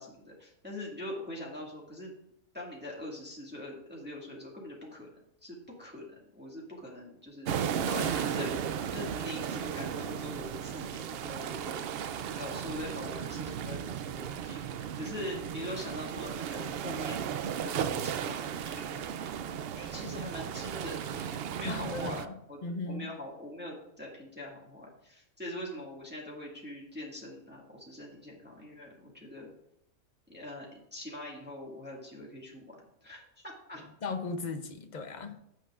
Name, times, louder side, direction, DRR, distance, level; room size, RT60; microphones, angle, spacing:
voice 1, 0.0-2.1 2.5-5.1 5.4-7.5 8.2-17.3 17.6-19.0 19.8-29.5 30.3-33.8, left 1 dB, 10° right, -4 dB, 1.8 m, -43 dB
sound 1, 7.5-22.3, right 8 dB, 65° right, 0.6 m, -35 dB
voice 2, 7.9-8.4 21.7-22.3 22.6-23.1 34.0-35.3, left 3 dB, 40° left, 7 dB, 0.8 m, -37 dB
16.0 x 5.9 x 2.4 m, 0.78 s
omnidirectional pair, 1.4 m